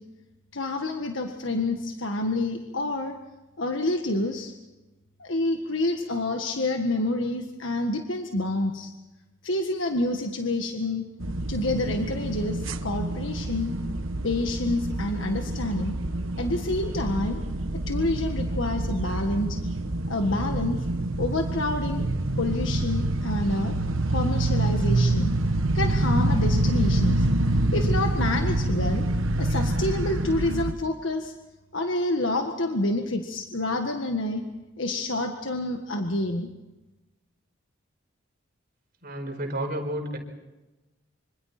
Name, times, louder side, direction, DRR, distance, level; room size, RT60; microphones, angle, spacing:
voice 1, 0.5-3.2 3.6-4.5 5.2-8.9 9.4-11.1 11.5-13.7 14.2-16.0 16.4-17.4 17.9-19.6 20.1-20.8 21.2-22.1 22.4-23.7 24.1-25.3 25.7-27.3 27.7-29.1 29.4-31.3 31.7-34.4 34.8-36.5, left 2 dB, 70° left, 4 dB, 1.7 m, -28 dB
sound 1, 11.2-30.7, right 1 dB, 90° right, 1.3 m, -26 dB
voice 2, 39.0-40.2, right 1 dB, 50° right, 2 dB, 5.0 m, -31 dB
26.0 x 26.0 x 4.4 m, 1.1 s
head